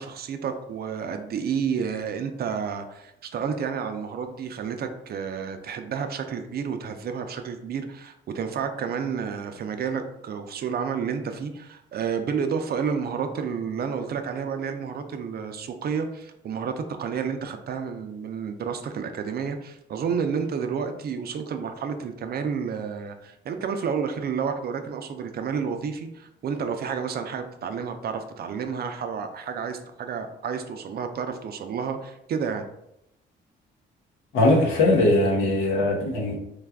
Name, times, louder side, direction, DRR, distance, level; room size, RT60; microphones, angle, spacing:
voice 1, 0.0-32.7, right 6 dB, 55° right, 7 dB, 0.4 m, -30 dB
voice 2, 34.3-36.4, left 2 dB, 85° left, -1 dB, 0.9 m, -20 dB
3.3 x 2.3 x 3.4 m, 0.82 s
cardioid pair, 90°, 20 cm